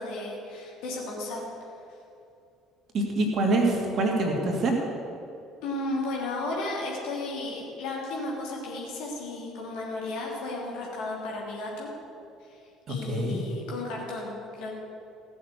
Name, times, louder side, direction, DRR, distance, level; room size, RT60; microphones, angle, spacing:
voice 1, 0.0-1.4 5.6-11.9 12.9-14.7, left 2 dB, 60° left, -3 dB, 3.2 m, -34 dB
voice 2, 2.9-4.8 12.9-13.4, right 2 dB, 45° right, 0 dB, 2.7 m, -25 dB
15.5 x 7.0 x 8.1 m, 2.6 s
figure-of-eight pair, 55°, 0 cm